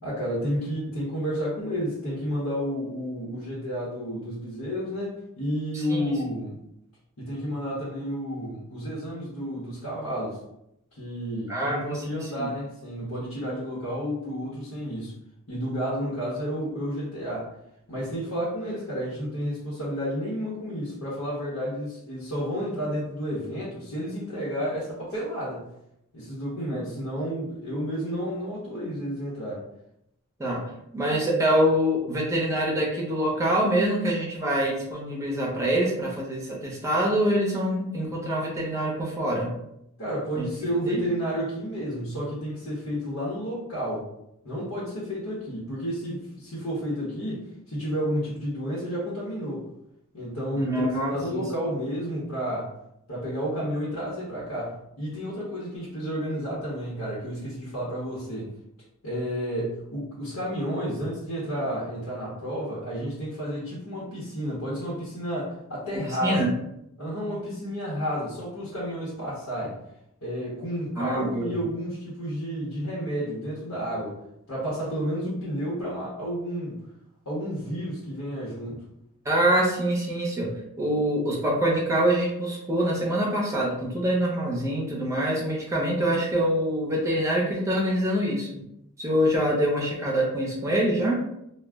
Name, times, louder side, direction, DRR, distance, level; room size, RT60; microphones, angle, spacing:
voice 1, 0.0-6.6 7.2-10.4 10.9-15.1 15.5-17.5 17.9-25.7 26.1-29.6 40.0-44.1 44.4-47.4 47.7-49.7 50.1-52.7 53.1-58.5 59.0-66.5 67.0-69.8 70.2-74.2 74.5-76.8 77.3-78.8, equal, 85° left, -8 dB, 0.9 m, -31 dB
voice 2, 11.5-12.5 30.4-30.6 30.9-39.6 40.4-40.5 40.9-41.0 50.6-51.4 66.2-66.5 71.0-71.5 79.2-80.5 80.8-88.6 89.0-91.2, right 1 dB, 15° right, -3 dB, 0.6 m, -25 dB
2.3 x 2.0 x 3.4 m, 0.81 s
head